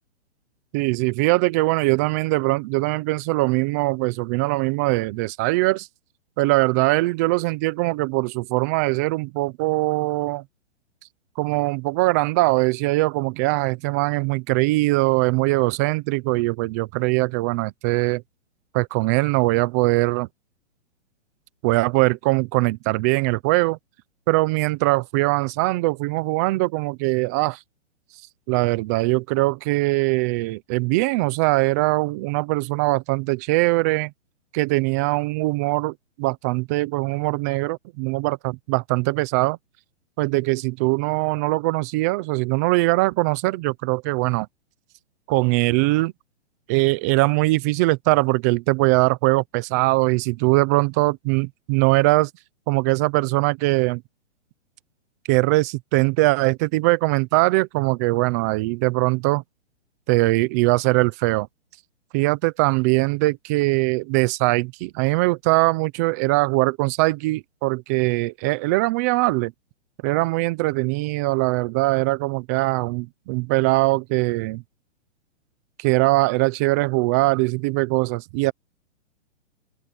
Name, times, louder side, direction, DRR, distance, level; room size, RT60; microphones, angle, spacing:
voice 1, 0.7-5.9 6.4-10.4 11.4-18.2 18.7-20.3 21.6-23.8 24.3-27.6 28.5-34.1 34.5-39.6 40.2-44.5 45.3-46.1 46.7-52.3 52.7-54.0 55.3-59.4 60.1-61.5 62.1-69.5 70.0-74.6 75.8-78.5, right 22 dB, 15° right, 0.4 m, -21 dB
open air
hypercardioid pair, 150°, 36 cm